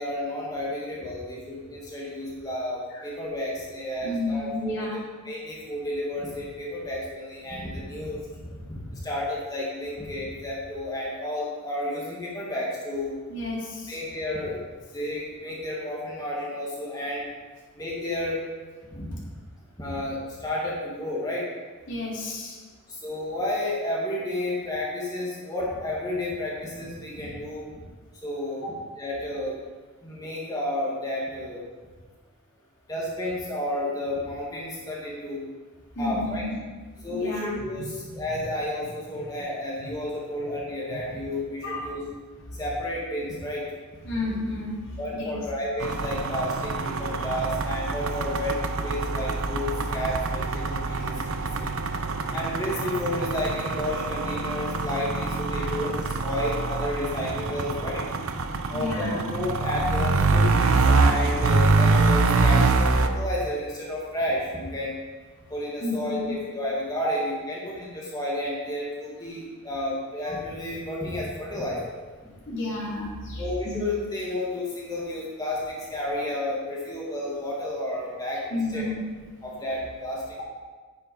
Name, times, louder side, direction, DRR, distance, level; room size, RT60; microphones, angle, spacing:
voice 1, 0.0-4.9 5.2-13.1 13.9-14.6 14.9-17.3 17.8-18.4 18.8-19.2 19.8-21.5 22.9-27.7 28.2-28.7 29.0-29.6 30.0-31.6 32.9-35.4 36.0-36.4 37.0-42.0 42.6-43.7 45.0-48.5 48.8-51.7 52.3-65.0 65.5-72.0 73.4-78.8 79.4-80.2, left 1 dB, 15° left, -5 dB, 2.3 m, -31 dB
voice 2, 4.0-5.0 13.3-13.9 21.9-22.6 28.6-28.7 36.0-36.5 37.1-37.9 39.1-39.2 41.6-41.9 44.0-45.4 47.1-47.2 55.5-55.7 58.7-59.3 65.8-66.3 67.0-67.1 72.5-73.8 78.5-79.0, left 2 dB, 55° left, -6 dB, 3.8 m, -31 dB
sound 1, 45.8-63.1, right 3 dB, 70° right, 0.7 m, -25 dB
9.7 x 8.6 x 5.3 m, 1.4 s
head